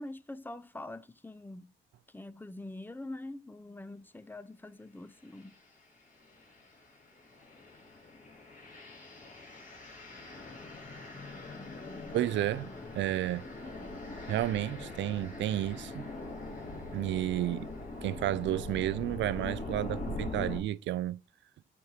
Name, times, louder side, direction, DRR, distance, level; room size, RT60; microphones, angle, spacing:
voice 1, 0.0-1.7 2.1-5.6, left 2 dB, 10° left, 0.5 m, -44 dB
sound 1, 5.3-5.6 6.2-20.6, left 2 dB, 40° left, 2.7 m, -42 dB
voice 2, 12.1-12.7 12.9-13.4 14.3-16.1 16.9-17.7 18.0-21.2, right 13 dB, 70° right, 0.4 m, -31 dB
12.5 x 4.8 x 2.8 m
cardioid pair, 90°, 20 cm